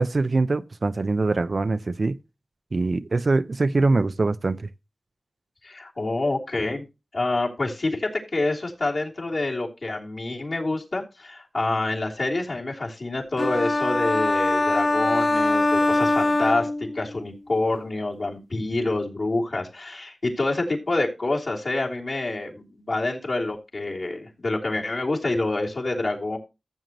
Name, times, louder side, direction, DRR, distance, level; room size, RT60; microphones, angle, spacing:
voice 1, 0.0-2.2 2.7-4.7, right 3 dB, 65° right, 0.5 m, -23 dB
voice 2, 5.6-6.9 7.1-16.7 16.9-26.4, left 2 dB, 70° left, 3.2 m, -27 dB
sound 1, 13.4-17.3, left 2 dB, 50° left, 0.7 m, -22 dB
14.0 x 7.5 x 3.0 m
cardioid pair, 40°, 0 cm